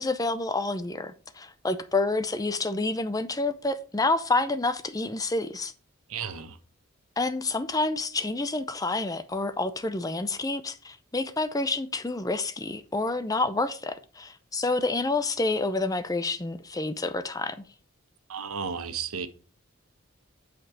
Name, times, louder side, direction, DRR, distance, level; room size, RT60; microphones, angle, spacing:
voice 1, 0.0-5.7 7.2-17.6, left 2 dB, 15° left, 0.5 m, -28 dB
voice 2, 6.1-6.6 18.3-19.3, right 6 dB, 85° right, 1.0 m, -33 dB
8.6 x 5.2 x 4.8 m
head